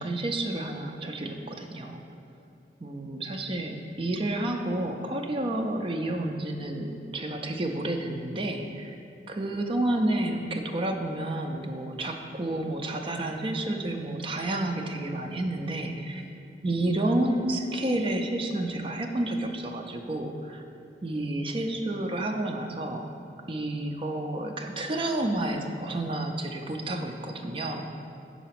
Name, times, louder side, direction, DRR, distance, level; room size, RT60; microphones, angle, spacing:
voice 1, 0.0-2.0 2.8-8.9 9.3-16.2 16.6-20.6 21.0-23.1 23.5-28.0, right 1 dB, 30° right, 3 dB, 0.5 m, -30 dB
5.6 x 4.0 x 5.8 m, 2.7 s
head